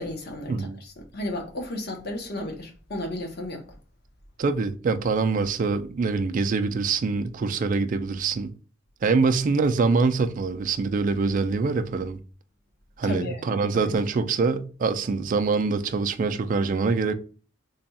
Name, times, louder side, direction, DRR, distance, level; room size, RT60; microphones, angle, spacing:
voice 1, 0.0-3.8 13.0-13.5 13.7-13.9, left 1 dB, 55° left, 0.9 m, -34 dB
voice 2, 4.4-8.5 9.0-12.2 13.0-17.1, right 4 dB, 40° right, 0.3 m, -24 dB
3.4 x 2.3 x 4.1 m
head